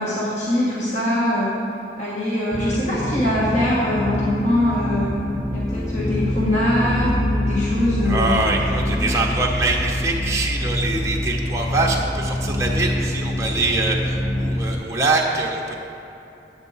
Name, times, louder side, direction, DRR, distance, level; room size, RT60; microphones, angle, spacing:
voice 1, 0.0-1.6 2.0-8.5 8.8-9.1, left 1 dB, 40° left, -8 dB, 1.5 m, -22 dB
sound 1, 2.5-14.8, left 1 dB, 15° left, 0.4 m, -25 dB
voice 2, 8.0-15.7, right 2 dB, 15° right, -2 dB, 0.9 m, -23 dB
9.3 x 8.0 x 4.1 m, 2.9 s
head